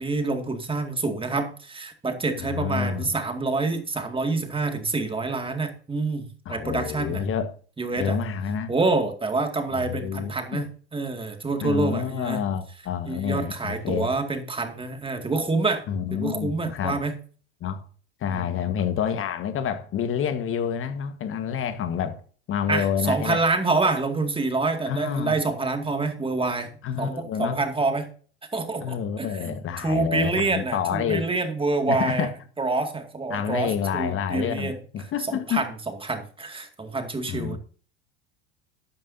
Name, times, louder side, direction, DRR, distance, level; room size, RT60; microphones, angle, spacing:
voice 1, 0.0-7.2 7.8-8.2 8.7-12.4 13.1-17.1 18.3-18.7 22.7-28.1 28.5-32.3 32.6-34.8 35.3-37.6, right 3 dB, 15° right, 2.2 m, -27 dB
voice 2, 2.4-3.1 6.4-7.5 7.9-8.7 9.8-10.6 11.6-14.1 15.9-17.0 17.6-17.8 18.2-22.2 22.5-23.4 24.9-25.3 26.8-27.6 28.8-31.3 31.9-32.3 33.3-35.6 37.3-37.6, left 8 dB, 40° left, 1.5 m, -28 dB
13.0 x 12.0 x 2.7 m
hypercardioid pair, 80°, 35 cm